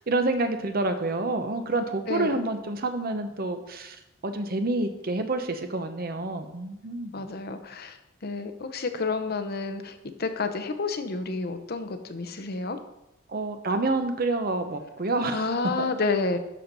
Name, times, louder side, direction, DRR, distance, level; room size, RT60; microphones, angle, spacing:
voice 1, 0.1-4.0 4.2-7.1 13.3-15.4 15.8-15.9, right 2 dB, 45° right, 7 dB, 0.9 m, -28 dB
voice 2, 1.9-2.4 7.1-8.0 8.2-12.8 15.3-16.4, left 3 dB, 50° left, 8 dB, 0.8 m, -30 dB
12.0 x 4.6 x 5.4 m, 0.93 s
head